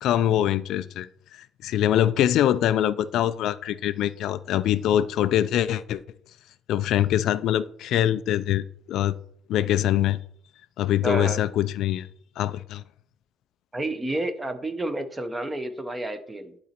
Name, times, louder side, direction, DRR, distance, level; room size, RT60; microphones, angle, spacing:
voice 1, 0.0-6.0 6.7-9.1 9.5-10.2 10.8-12.1 12.4-12.8, left 11 dB, 55° left, 14 dB, 0.3 m, -24 dB
voice 2, 11.0-11.4 13.7-16.6, right 1 dB, 10° right, 9 dB, 0.7 m, -30 dB
11.0 x 4.0 x 4.4 m, 0.63 s
cardioid pair, 155°, 0 cm